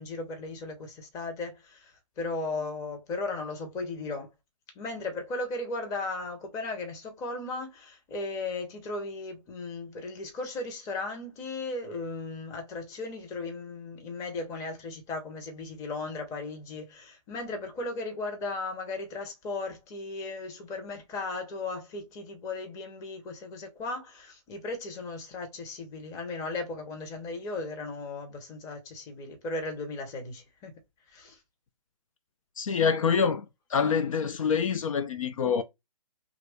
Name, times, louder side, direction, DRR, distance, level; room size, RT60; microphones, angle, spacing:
voice 1, 0.0-4.3 4.8-30.7 31.1-31.4, left 3 dB, 20° left, 0.8 m, -36 dB
voice 2, 32.6-35.6, left 6 dB, 65° left, 0.5 m, -26 dB
2.9 x 2.4 x 3.3 m
hypercardioid pair, 145°, 18 cm